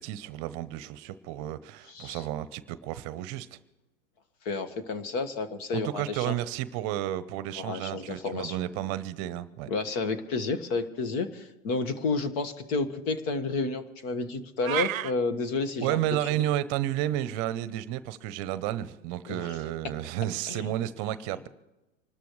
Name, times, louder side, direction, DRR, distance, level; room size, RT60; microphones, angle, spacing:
voice 1, 0.0-3.6 5.8-9.7 15.8-21.5, right 13 dB, 40° right, 15 dB, 0.8 m, -32 dB
voice 2, 1.9-2.2 4.4-6.3 7.6-8.6 9.7-16.0 16.3-16.4 19.3-19.5 20.5-20.7, left 3 dB, 50° left, 10 dB, 1.8 m, -31 dB
sound 1, 14.6-15.1, right 13 dB, 85° right, 0.6 m, -29 dB
25.5 x 13.0 x 3.2 m, 1.0 s
hypercardioid pair, 120°, 39 cm